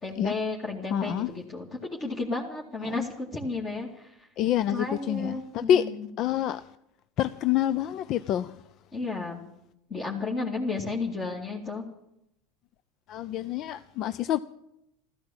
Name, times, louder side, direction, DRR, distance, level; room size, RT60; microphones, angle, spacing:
voice 1, 0.0-4.3 4.7-6.1 8.9-9.4 9.9-11.9, left 3 dB, 30° left, 2.5 m, -33 dB
voice 2, 0.9-1.3 2.8-3.1 4.4-5.8 6.2-6.6 7.2-8.6 13.1-14.4, left 11 dB, 50° left, 0.5 m, -27 dB
14.0 x 13.5 x 7.3 m
hypercardioid pair, 90°, 0 cm